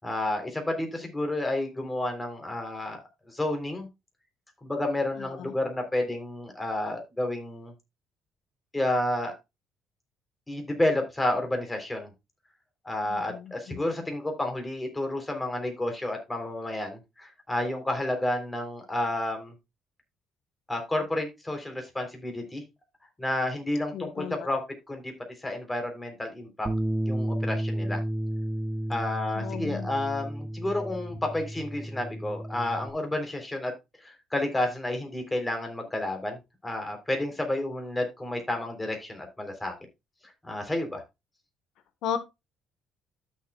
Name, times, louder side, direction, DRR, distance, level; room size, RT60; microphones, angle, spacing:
voice 1, 0.0-3.0 3.3-3.9 4.6-7.7 8.7-9.3 10.5-12.1 12.8-19.5 20.7-22.6 23.2-24.6 24.9-25.1 25.4-26.7 27.0-28.0 28.9-33.7 34.0-39.7 40.4-41.0, left 1 dB, 10° left, 3.5 m, -30 dB
voice 2, 5.2-5.5 13.0-13.9 23.9-24.5 29.3-29.9 42.0-42.2, left 9 dB, 70° left, 1.3 m, -35 dB
Bass guitar, 26.7-32.9, right 1 dB, 15° right, 0.9 m, -32 dB
14.0 x 6.5 x 2.3 m
cardioid pair, 110°, 0 cm